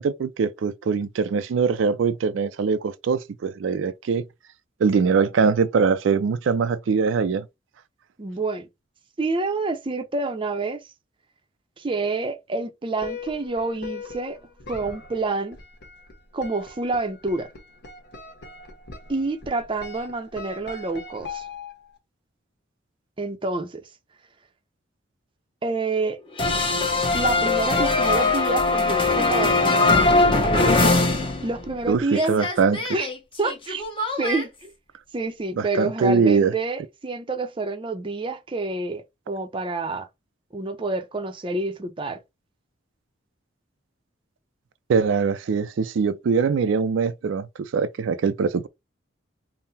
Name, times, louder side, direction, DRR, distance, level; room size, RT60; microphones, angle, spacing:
voice 1, 0.0-4.2 4.8-7.5 31.9-32.9 35.6-36.5 44.9-48.7, right 5 dB, 80° right, 0.4 m, -22 dB
voice 2, 8.2-8.7 9.2-10.9 11.8-14.4 14.7-15.6 16.3-17.5 19.1-21.4 23.2-23.8 25.6-26.2 27.1-30.1 31.4-32.4 32.9-33.1 33.4-33.9 34.2-34.7 35.1-40.1 40.5-42.2, right 3 dB, 25° right, 0.5 m, -28 dB
sound 1, 13.0-22.0, left 4 dB, 60° left, 1.1 m, -40 dB
sound 2, 26.4-31.8 32.1-34.4, left 3 dB, 30° left, 0.9 m, -21 dB
3.7 x 2.0 x 4.0 m
head